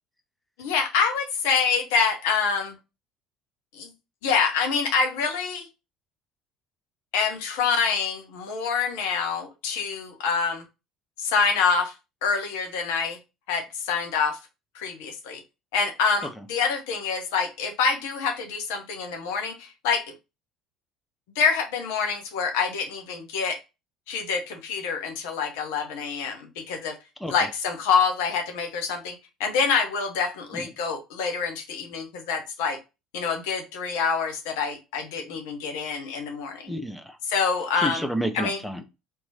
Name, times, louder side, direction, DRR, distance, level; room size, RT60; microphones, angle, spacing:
voice 1, 0.6-2.8 3.7-3.9 4.2-5.7 7.1-10.6 11.2-11.9 12.2-13.2 13.5-14.4 14.7-15.4 15.7-20.1 21.4-23.6 24.1-27.0 27.3-32.8 33.1-36.7 37.3-38.0 38.3-38.6, left 5 dB, 70° left, 4 dB, 0.8 m, -26 dB
voice 2, 36.7-37.2 37.8-38.8, equal, 5° left, 6 dB, 0.8 m, -30 dB
3.7 x 3.0 x 2.7 m, 0.27 s
hypercardioid pair, 60°, 0 cm